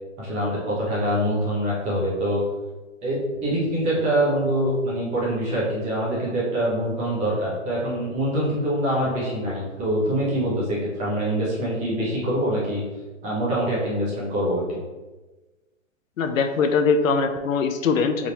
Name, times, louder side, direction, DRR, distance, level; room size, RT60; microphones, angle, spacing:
voice 1, 0.2-2.4 3.0-12.8 13.2-14.6, right 1 dB, 20° right, -6 dB, 0.9 m, -24 dB
voice 2, 16.2-18.3, left 5 dB, 80° left, 7 dB, 0.5 m, -22 dB
3.6 x 2.6 x 2.9 m, 1.2 s
hypercardioid pair, 140°, 39 cm